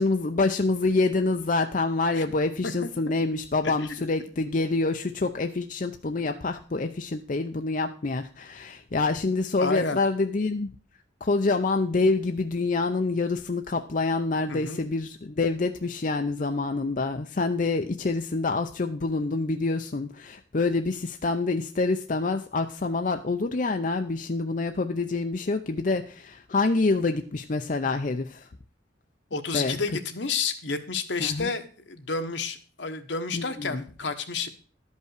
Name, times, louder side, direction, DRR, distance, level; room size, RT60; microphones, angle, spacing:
voice 1, 0.0-10.7 11.2-28.5 29.5-29.8 31.2-31.5 33.3-33.8, left 3 dB, 45° left, 6 dB, 0.6 m, -26 dB
voice 2, 9.6-10.0 14.5-14.8 29.3-34.5, left 4 dB, 75° left, 7 dB, 1.3 m, -30 dB
12.0 x 5.5 x 6.5 m, 0.41 s
head